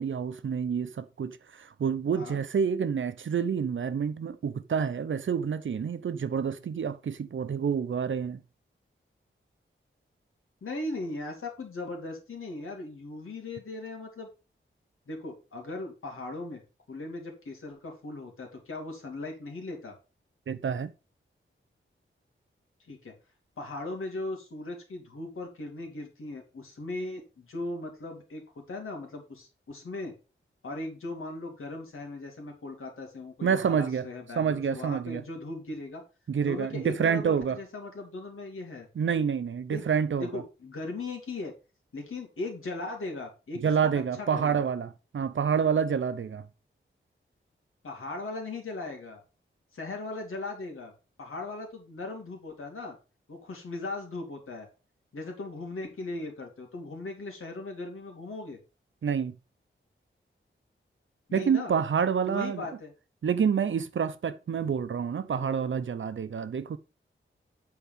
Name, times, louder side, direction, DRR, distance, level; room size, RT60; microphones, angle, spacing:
voice 1, 0.0-8.4 20.5-20.9 33.4-34.1 34.4-35.2 36.3-37.6 39.0-40.4 43.6-46.5 59.0-59.4 61.3-62.7 63.2-66.8, right 7 dB, 70° right, 0.7 m, -28 dB
voice 2, 10.6-14.3 15.1-16.6 16.9-20.0 22.8-23.1 23.6-30.1 30.6-36.0 36.4-38.9 39.7-39.9 40.2-41.5 41.9-43.6 43.9-44.7 47.8-49.2 49.7-50.9 51.2-53.0 53.3-54.7 55.1-58.6 61.3-61.7 62.3-62.9, left 2 dB, 85° left, 2.9 m, -38 dB
8.5 x 4.7 x 5.5 m
wide cardioid pair, 130°, 21 cm